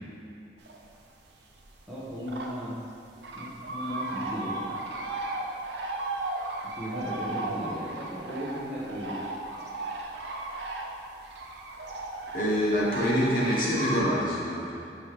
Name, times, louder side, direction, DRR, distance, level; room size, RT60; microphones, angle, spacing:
sound 1, 0.7-1.1 1.5-2.6 2.8-2.9 3.2-14.0, right 2 dB, 75° right, 0.7 m, -35 dB
voice 1, 1.9-2.8 3.3-4.7 6.6-9.2, equal, 5° right, -11 dB, 1.1 m, -36 dB
voice 2, 12.3-14.7, equal, 50° left, -6 dB, 1.4 m, -26 dB
5.4 x 4.7 x 4.8 m, 2.6 s
head